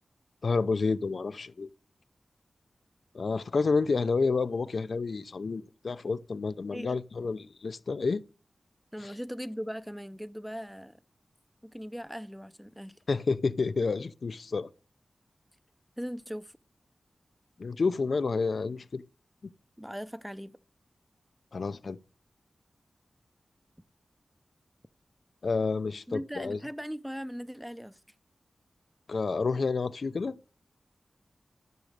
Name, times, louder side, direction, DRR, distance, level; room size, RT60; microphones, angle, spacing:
voice 1, 0.4-1.7 3.1-8.2 9.0-9.1 13.1-14.7 17.6-19.0 21.5-22.0 25.4-26.6 29.1-30.3, left 4 dB, 70° left, 0.6 m, -29 dB
voice 2, 8.9-11.0 11.6-13.0 16.0-16.6 19.8-20.6 26.1-28.0, equal, 5° right, 0.6 m, -39 dB
13.5 x 6.3 x 6.6 m
wide cardioid pair, 70°, 0 cm